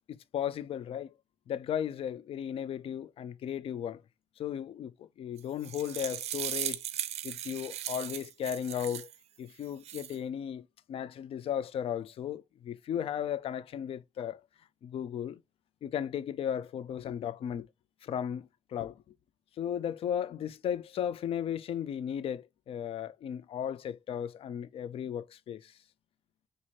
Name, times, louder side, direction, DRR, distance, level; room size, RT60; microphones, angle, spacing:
voice 1, 0.3-1.1 1.5-4.0 4.4-6.8 7.2-9.1 9.4-14.4 14.8-15.4 15.8-17.7 18.0-19.0 19.6-25.7, left 9 dB, 60° left, 0.4 m, -35 dB
sound 1, 5.4-9.2 9.6-10.2, right 11 dB, 80° right, 0.4 m, -38 dB
4.2 x 2.6 x 2.9 m
wide cardioid pair, 145°, 11 cm